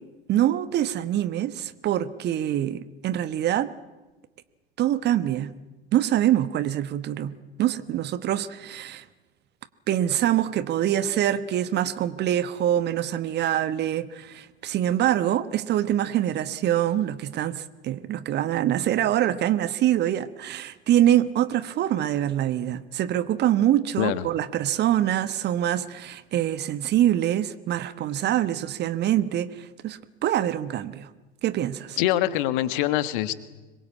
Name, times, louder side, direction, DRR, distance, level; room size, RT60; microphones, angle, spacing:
voice 1, 0.3-3.7 4.8-5.5 5.9-9.0 9.9-31.1 31.4-32.0, right 12 dB, 30° right, 15 dB, 1.2 m, -25 dB
voice 2, 32.0-33.3, left 14 dB, 50° left, 14 dB, 1.5 m, -24 dB
25.5 x 22.0 x 8.4 m, 1.2 s
figure-of-eight pair, 80°, 32 cm